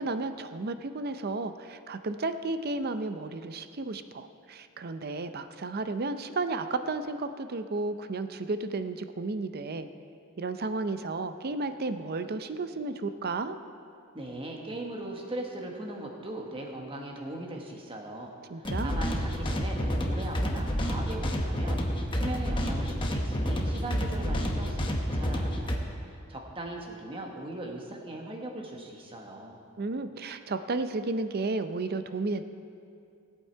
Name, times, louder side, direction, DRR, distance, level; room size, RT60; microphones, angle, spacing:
voice 1, 0.0-9.9 10.4-13.6 18.5-19.0 29.8-32.4, right 3 dB, 45° right, 10 dB, 0.5 m, -33 dB
voice 2, 14.1-25.8 26.1-29.6, right 1 dB, 25° right, 1 dB, 1.4 m, -39 dB
sound 1, 18.6-25.8, equal, 25° left, 1.1 m, -29 dB
18.0 x 8.3 x 4.6 m, 2.5 s
head